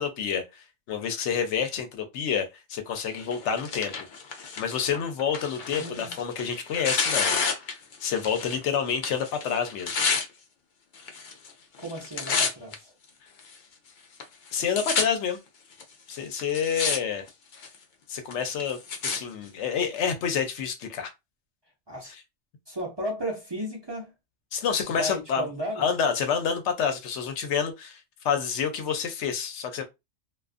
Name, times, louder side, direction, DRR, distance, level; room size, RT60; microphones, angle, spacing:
voice 1, 0.0-3.9 4.3-7.4 7.7-7.8 8.0-9.9 14.5-15.4 16.1-17.3 18.1-21.1 24.5-25.5 25.8-29.8, left 7 dB, 90° left, 0.9 m, -28 dB
Tearing, 3.2-8.6 8.9-10.3 11.0-11.5 11.8-12.7 13.4-13.5 14.2-14.3 14.5-15.0 15.8-15.9 16.4-17.0 17.3-17.8 18.3-19.2 20.0-20.1, left 5 dB, 55° left, 0.6 m, -29 dB
voice 2, 5.7-6.1 11.8-12.9 21.9-22.1 22.7-24.1 24.9-25.9, equal, 30° right, 0.6 m, -34 dB
2.4 x 2.4 x 2.4 m
omnidirectional pair, 1.2 m